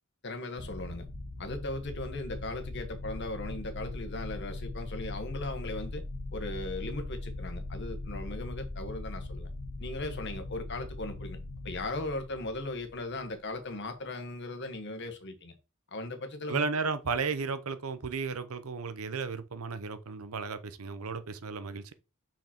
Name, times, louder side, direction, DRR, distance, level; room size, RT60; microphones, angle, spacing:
voice 1, 0.2-1.0 1.4-6.0 6.3-9.5 9.8-11.4 11.6-15.5 15.9-16.7, left 2 dB, 55° left, 1.4 m, -38 dB
sound 1, 0.6-13.6, left 2 dB, 85° left, 1.2 m, -40 dB
voice 2, 16.5-21.9, right 4 dB, 80° right, 0.7 m, -34 dB
5.9 x 5.0 x 4.4 m
head